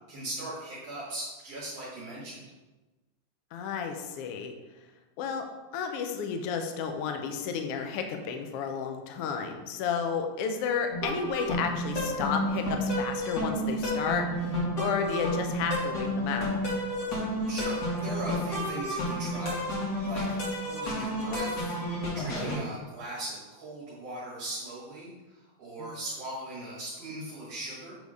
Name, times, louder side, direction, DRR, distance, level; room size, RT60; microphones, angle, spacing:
voice 1, 0.1-2.4 17.1-20.3 20.6-28.0, right 1 dB, 60° right, -6 dB, 2.5 m, -39 dB
voice 2, 3.5-4.5 5.2-5.4 5.7-16.6 22.5-22.6 25.8-26.0, left 6 dB, 80° left, 5 dB, 1.3 m, -32 dB
sound 1, 10.9-22.6, equal, 40° left, 2.1 m, -31 dB
8.2 x 3.5 x 4.8 m, 1.1 s
omnidirectional pair, 3.4 m